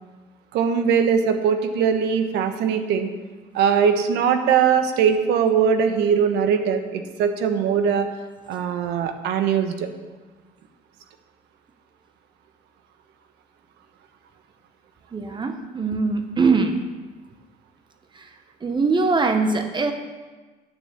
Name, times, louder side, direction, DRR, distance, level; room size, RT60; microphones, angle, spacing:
voice 1, 0.5-3.1 3.5-8.1 8.5-9.9, right 7 dB, 85° right, 7 dB, 1.1 m, -21 dB
voice 2, 15.1-16.8 18.1-18.3 18.6-19.9, right 4 dB, 25° right, 6 dB, 1.0 m, -22 dB
9.5 x 6.6 x 7.2 m, 1.3 s
cardioid pair, 110°, 17 cm